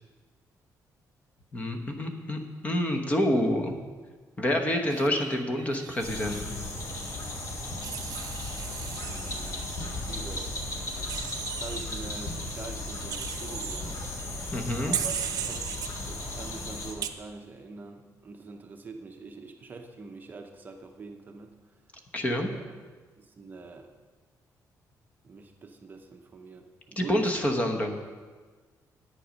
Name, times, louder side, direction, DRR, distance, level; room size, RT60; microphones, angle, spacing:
voice 1, 1.5-3.8 4.4-6.7 14.5-15.0 22.1-22.5 27.0-28.0, left 1 dB, 20° left, 3 dB, 1.0 m, -28 dB
Wild animals, 4.9-6.4 7.8-9.9 11.1-11.8 13.1-13.8 14.9-15.9 17.0-17.1, right 9 dB, 70° right, 0.6 m, -36 dB
sound 1, 6.0-16.9, left 1 dB, 55° left, 1.7 m, -36 dB
voice 2, 8.9-9.7 10.1-10.5 10.9-14.0 14.8-15.6 16.0-21.5 22.1-22.6 23.2-23.9 25.2-27.3, right 4 dB, 30° right, 3 dB, 0.7 m, -44 dB
10.0 x 8.7 x 5.1 m, 1.4 s
cardioid pair, 165°, 7 cm